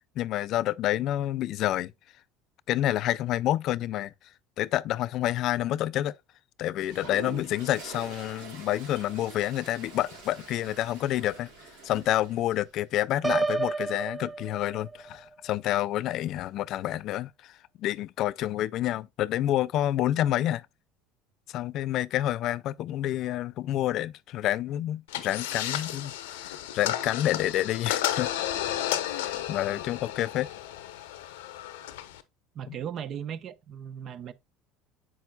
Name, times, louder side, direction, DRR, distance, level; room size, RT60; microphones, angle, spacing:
voice 1, 0.2-1.9 2.7-4.1 4.6-6.1 6.6-11.5 11.8-17.5 17.8-20.6 21.5-28.3 29.1-30.5 32.7-32.8, left 13 dB, 55° left, 0.3 m, -28 dB
Toilet flush, 6.8-12.6, right 4 dB, 85° right, 4.0 m, -45 dB
Piano, 13.2-15.2, right 3 dB, 15° right, 0.4 m, -30 dB
sound 1, 25.1-32.2, left 12 dB, 80° left, 0.7 m, -33 dB
voice 2, 32.5-34.3, right 9 dB, 50° right, 0.7 m, -37 dB
7.8 x 6.0 x 2.3 m
hypercardioid pair, 75°, 0 cm